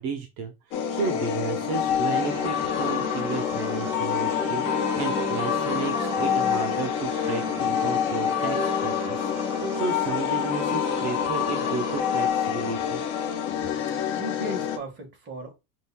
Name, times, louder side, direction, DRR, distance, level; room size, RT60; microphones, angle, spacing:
voice 1, 0.0-13.0, right 4 dB, 55° right, 1.1 m, -33 dB
sound 1, 0.7-14.8, left 9 dB, 25° left, 0.4 m, -27 dB
sound 2, 2.1-12.3, right 2 dB, 5° right, 0.8 m, -35 dB
voice 2, 13.9-15.5, right 1 dB, 20° right, 1.5 m, -37 dB
5.2 x 2.8 x 2.2 m
supercardioid pair, 150°, 50 cm